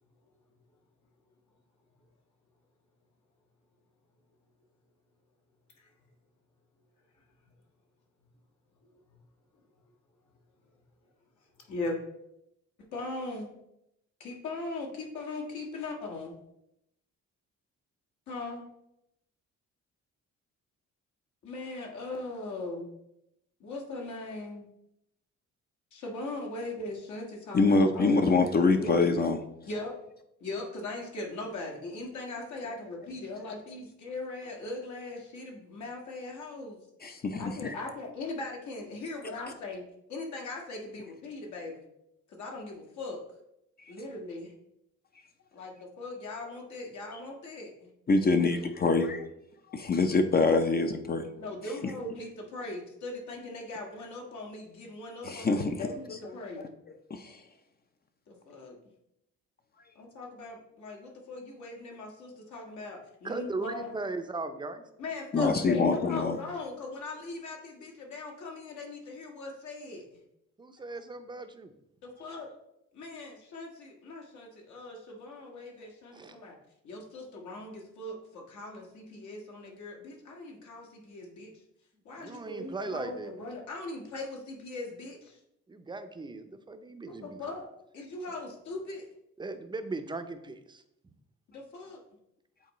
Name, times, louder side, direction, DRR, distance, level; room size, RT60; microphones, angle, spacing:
voice 1, 11.6-12.0 12.9-13.5 14.2-16.3 18.3-18.6 21.4-22.9 23.6-24.7 25.9-28.2 28.7-29.1 29.6-30.0 30.4-36.8 37.4-39.8 40.1-41.8 42.3-43.2 43.9-44.5 45.5-47.9 51.4-56.7 58.3-58.8 59.9-63.9 65.0-70.0 72.0-72.5 72.9-76.6 76.8-81.5 82.0-85.4 87.1-87.7 87.9-89.1 91.5-92.0, left 2 dB, 70° left, 0 dB, 1.6 m, -39 dB
voice 2, 27.5-29.4 37.0-37.7 48.1-49.1 49.7-51.2 55.2-55.9 57.1-57.3 65.3-66.4, left 3 dB, 30° left, 6 dB, 0.6 m, -25 dB
voice 3, 63.2-64.8 70.6-71.7 76.1-76.4 82.2-83.3 85.7-87.4 89.4-90.8, right 3 dB, 15° right, 8 dB, 0.6 m, -38 dB
8.4 x 3.7 x 3.1 m, 0.82 s
cardioid pair, 90°, 30 cm